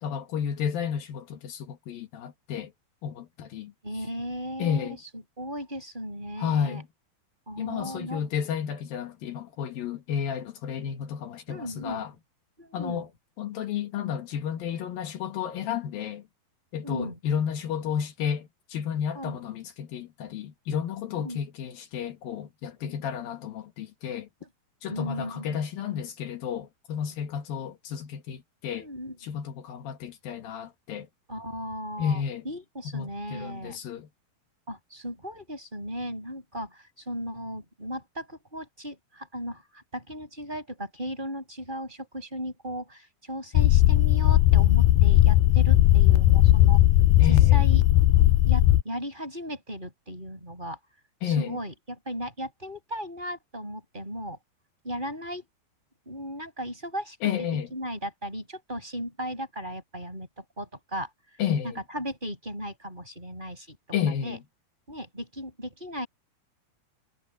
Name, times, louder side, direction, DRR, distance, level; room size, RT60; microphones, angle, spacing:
voice 1, 0.0-2.7 3.0-3.7 4.6-5.0 6.4-6.9 7.6-12.1 12.7-13.1 13.4-16.3 16.7-24.3 24.8-28.9 29.2-31.1 32.0-32.4 32.8-34.1 47.2-47.6 51.2-51.6 57.2-57.7 61.4-61.8 63.9-64.4, left 8 dB, 70° left, 3.2 m, -31 dB
voice 2, 3.8-6.8 7.5-8.2 10.8-11.0 11.5-12.1 12.6-13.0 16.8-17.2 19.1-19.4 21.2-21.4 22.8-22.9 24.4-24.5 24.9-25.7 28.7-29.2 31.3-33.8 34.7-46.8 47.3-47.8 48.4-50.8 51.2-54.4 54.8-55.4 56.1-61.1 61.9-63.8 64.2-64.4 64.9-66.1, equal, 10° right, 7.9 m, -36 dB
sound 1, 43.5-48.8, left 15 dB, 90° left, 1.9 m, -18 dB
omnidirectional pair, 4.5 m